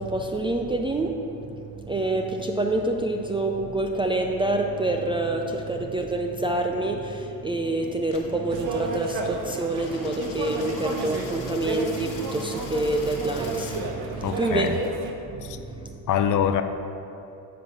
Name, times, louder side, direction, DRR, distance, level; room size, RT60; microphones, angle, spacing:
voice 1, 0.0-14.9 15.3-16.0, right 2 dB, 10° right, 2 dB, 0.4 m, -27 dB
Coin (dropping), 8.0-13.8, left 5 dB, 75° left, 1.4 m, -45 dB
sound 1, 8.5-15.1, right 2 dB, 55° right, 1.0 m, -32 dB
voice 2, 14.2-14.8 15.4-15.6 16.1-16.6, left 9 dB, 40° left, 8 dB, 0.6 m, -24 dB
9.4 x 3.9 x 6.0 m, 2.7 s
supercardioid pair, 80°, 47 cm